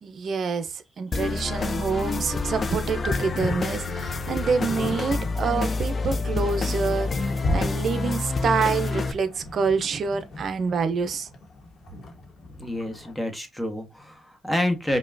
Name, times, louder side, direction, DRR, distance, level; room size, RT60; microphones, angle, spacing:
voice 1, 0.0-11.3, right 5 dB, 55° right, 0.6 m, -27 dB
sound 1, 1.1-9.1, left 3 dB, 40° left, 0.5 m, -28 dB
sound 2, 1.7-13.1, left 1 dB, 60° left, 1.1 m, -36 dB
voice 2, 12.6-15.0, left 1 dB, 5° left, 1.1 m, -28 dB
5.3 x 2.3 x 2.5 m
cardioid pair, 90°, 0 cm